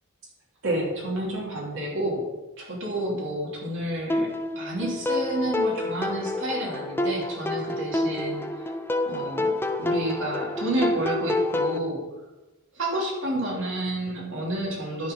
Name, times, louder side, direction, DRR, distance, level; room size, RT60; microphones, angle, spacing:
voice 1, 0.6-2.3 2.6-8.4 9.1-12.1 12.7-15.1, right 1 dB, 65° right, -2 dB, 2.8 m, -30 dB
sound 1, 4.1-11.8, left 1 dB, 10° left, 0.6 m, -28 dB
13.0 x 4.6 x 5.4 m, 1.1 s
head